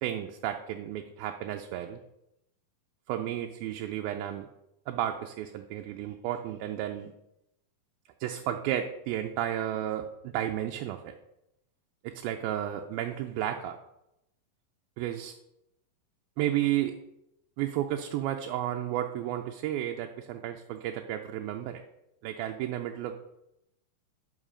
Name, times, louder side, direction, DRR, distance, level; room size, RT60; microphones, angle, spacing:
voice 1, 0.0-2.0 3.1-4.5 4.9-7.1 8.2-11.1 12.0-13.8 15.0-15.4 16.4-17.0 17.6-21.8 22.2-23.1, right 12 dB, 90° right, 4 dB, 2.5 m, -32 dB
11.5 x 5.9 x 5.0 m, 0.86 s
omnidirectional pair, 4.1 m